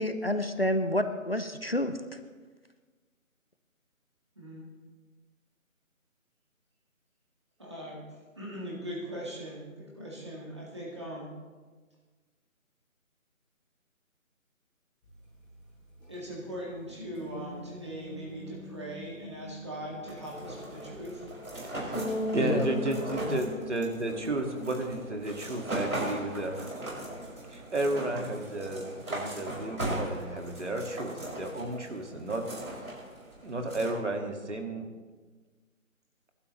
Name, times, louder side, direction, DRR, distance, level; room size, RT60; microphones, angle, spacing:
voice 1, 0.0-1.9 22.4-22.6 23.3-23.4, left 1 dB, 45° left, 8 dB, 0.6 m, -29 dB
voice 2, 4.4-4.7 7.6-8.1 8.4-11.3 16.1-21.2, equal, 20° right, -4 dB, 2.0 m, -40 dB
sound 1, 15.0-27.6, left 1 dB, 5° right, 3.3 m, -41 dB
sound 2, 20.0-33.9, right 1 dB, 85° right, 5.8 m, -38 dB
voice 3, 22.3-26.7 27.5-32.4 33.4-34.9, right 1 dB, 55° right, 4 dB, 1.9 m, -33 dB
24.5 x 12.5 x 3.1 m, 1.4 s
figure-of-eight pair, 180°, 41 cm